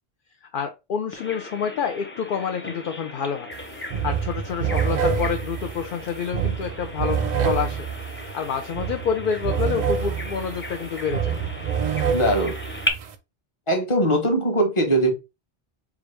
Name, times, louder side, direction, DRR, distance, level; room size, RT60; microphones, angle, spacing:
voice 1, 0.4-3.5 4.0-7.9 8.3-11.3, left 7 dB, 60° left, 0.7 m, -28 dB
Bird vocalization bird call bird song, 1.1-12.9, left 1 dB, 15° left, 0.6 m, -36 dB
sound 1, 3.5-3.6 3.9-13.1, right 7 dB, 55° right, 0.6 m, -27 dB
voice 2, 12.1-12.6 13.7-15.1, right 1 dB, 30° left, 1.1 m, -21 dB
4.8 x 2.5 x 3.2 m
omnidirectional pair, 1.0 m